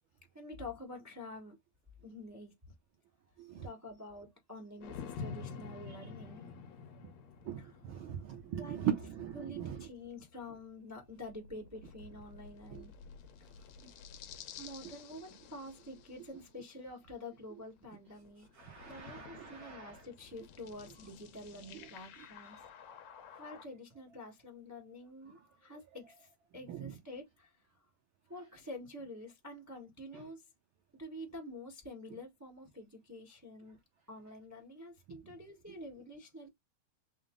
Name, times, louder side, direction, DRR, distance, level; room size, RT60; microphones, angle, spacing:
voice 1, 0.3-1.6 2.0-2.5 3.6-6.5 7.6-8.1 8.6-8.9 9.3-12.9 13.4-13.5 13.8-13.9 14.6-18.5 18.8-22.9 23.4-27.5 28.3-30.4 31.0-33.8 34.1-36.5, left 1 dB, 15° right, 0.5 m, -48 dB
sound 1, 4.8-17.0 17.7-23.6, left 6 dB, 75° left, 2.1 m, -50 dB
voice 2, 7.5-9.9 12.7-12.8 14.8-14.9 18.5-20.0 21.7-21.9 22.2-22.3 26.7-27.0 30.1-30.2 35.7-35.8, right 9 dB, 80° right, 1.1 m, -40 dB
5.5 x 2.0 x 3.7 m
omnidirectional pair, 3.3 m